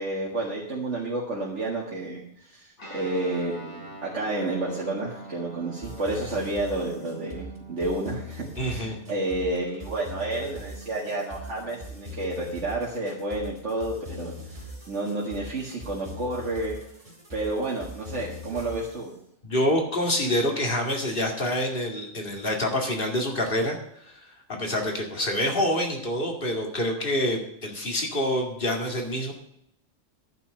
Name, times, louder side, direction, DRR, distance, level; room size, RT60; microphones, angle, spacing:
voice 1, 0.0-16.8 17.3-19.1, right 2 dB, 85° right, -4 dB, 2.1 m, -30 dB
Guitar, 2.8-12.7, right 3 dB, 80° left, 5.3 m, -45 dB
sound 1, 5.8-19.1, left 2 dB, 30° right, 2.6 m, -42 dB
voice 2, 8.6-9.0 19.4-29.3, left 1 dB, 50° left, 2 dB, 2.4 m, -27 dB
10.5 x 6.1 x 8.7 m, 0.74 s
omnidirectional pair, 1.2 m